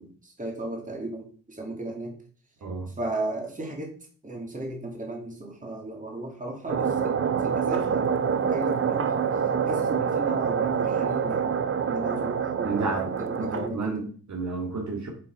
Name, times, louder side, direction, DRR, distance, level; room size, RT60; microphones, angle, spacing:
voice 1, 0.0-2.2 3.0-3.9 4.2-7.2 7.4-8.1 8.5-9.4 9.7-11.6 11.9-13.9, right 2 dB, 25° right, 1 dB, 2.4 m, -35 dB
voice 2, 2.6-2.9 12.6-15.1, right 3 dB, 60° right, 0 dB, 2.1 m, -31 dB
sound 1, 6.7-13.7, right 7 dB, 40° right, 0.7 m, -26 dB
7.2 x 4.0 x 4.7 m, 0.43 s
cardioid pair, 65°, 32 cm